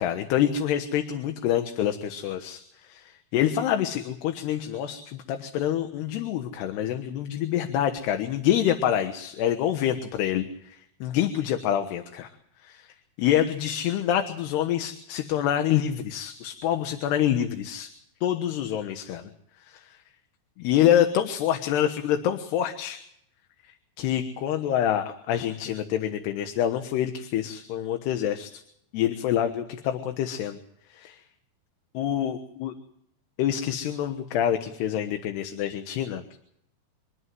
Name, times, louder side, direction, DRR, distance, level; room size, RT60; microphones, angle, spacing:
voice 1, 0.0-12.3 12.6-12.9 13.2-17.9 18.2-19.3 19.7-19.9 20.6-23.0 24.0-28.6 28.9-30.6 30.9-31.2 32.0-32.7 33.4-36.2, left 10 dB, 80° left, 7 dB, 3.4 m, -26 dB
26.5 x 11.5 x 9.5 m, 0.72 s
omnidirectional pair, 4.7 m